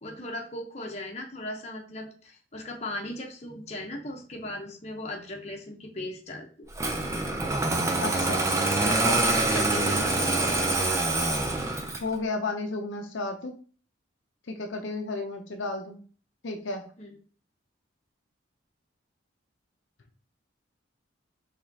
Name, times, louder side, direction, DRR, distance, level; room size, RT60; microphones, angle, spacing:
voice 1, 0.0-6.7 9.3-10.7 17.0-17.1, left 1 dB, 35° left, 1 dB, 0.8 m, -38 dB
Engine starting, 6.7-12.1, right 2 dB, 15° right, 0.5 m, -25 dB
voice 2, 8.0-8.4 8.8-9.2 10.7-10.9 12.0-13.5 14.5-16.0 16.4-16.8, left 2 dB, 75° left, 4 dB, 0.6 m, -33 dB
4.8 x 3.3 x 2.7 m, 0.41 s
head